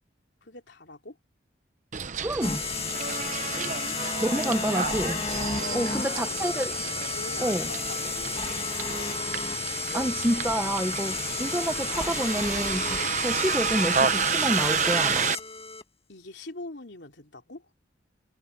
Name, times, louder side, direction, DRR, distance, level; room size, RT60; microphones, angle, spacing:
voice 1, 0.4-1.2 2.0-2.3 3.4-3.6 5.5-6.4 7.1-9.2 13.0-13.2 16.1-17.7, left 2 dB, 70° left, 3.3 m, -44 dB
Bus, 1.9-15.4, right 6 dB, 40° right, 0.8 m, -30 dB
voice 2, 2.2-2.6 4.2-5.2 5.7-6.7 7.4-7.7 9.9-15.3, right 1 dB, 10° right, 0.9 m, -28 dB
sound 1, 2.4-15.8, left 5 dB, 35° left, 2.3 m, -32 dB
head